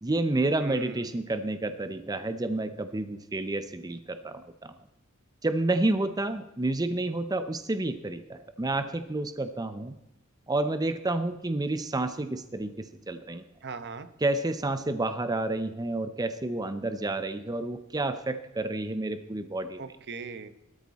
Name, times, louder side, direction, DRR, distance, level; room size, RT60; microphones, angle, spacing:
voice 1, 0.0-4.7 5.4-9.9 10.5-13.4 14.2-19.8, right 2 dB, 20° right, 10 dB, 0.6 m, -30 dB
voice 2, 0.6-1.4 13.6-14.1 19.8-20.5, right 4 dB, 55° right, 11 dB, 1.0 m, -40 dB
17.0 x 13.0 x 4.1 m, 0.92 s
head